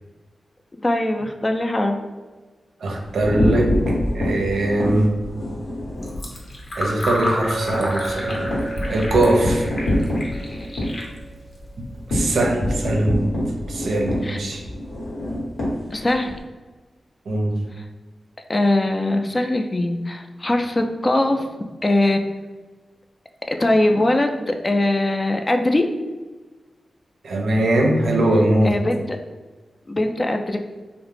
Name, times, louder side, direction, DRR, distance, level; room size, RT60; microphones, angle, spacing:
voice 1, 0.8-2.0 14.2-14.4 15.9-16.3 17.8-17.9 18.5-21.5 21.8-22.2 23.5-25.8 28.6-29.2 29.9-30.6, left 1 dB, 35° left, 4 dB, 0.3 m, -21 dB
voice 2, 2.8-3.8 4.1-5.1 6.8-8.4 8.9-9.7 12.1-13.2 13.7-14.6 17.3-17.5 27.2-28.7, right 1 dB, 85° right, 0 dB, 0.5 m, -20 dB
sound 1, 3.0-6.2 6.6-6.8 7.1-7.2 7.5-16.4, left 1 dB, 90° left, 0.9 m, -25 dB
Fill (with liquid), 5.9-12.1, left 1 dB, 60° left, 0.7 m, -31 dB
Chink clink, 7.5-11.7, right 2 dB, 20° right, 0.5 m, -34 dB
2.4 x 2.0 x 3.1 m, 1.3 s
cardioid pair, 45°, 0 cm